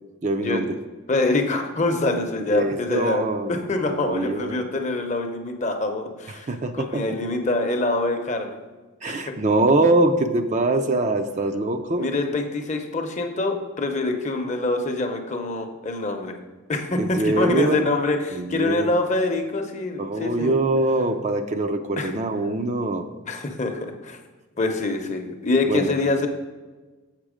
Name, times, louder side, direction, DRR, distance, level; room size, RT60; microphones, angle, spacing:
voice 1, 0.2-0.7 2.5-3.6 3.9-4.6 6.5-7.0 9.0-12.1 17.0-17.8 18.3-18.9 20.0-23.1 25.7-26.0, right 2 dB, 35° right, 5 dB, 0.4 m, -23 dB
voice 2, 1.1-3.2 3.5-6.5 6.7-8.6 9.1-9.2 12.0-16.3 16.7-20.5 22.0-22.1 23.3-24.2 24.6-26.3, left 2 dB, 35° left, 5 dB, 0.7 m, -25 dB
7.4 x 5.6 x 5.0 m, 1.3 s
head